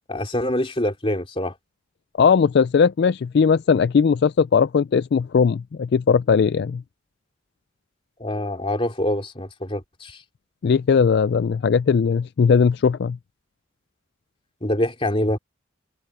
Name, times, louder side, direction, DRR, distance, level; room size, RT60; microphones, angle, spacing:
voice 1, 0.1-1.5 8.2-10.2 14.6-15.4, left 1 dB, 25° left, 2.9 m, -25 dB
voice 2, 2.2-6.8 10.6-13.2, left 6 dB, 55° left, 0.3 m, -18 dB
head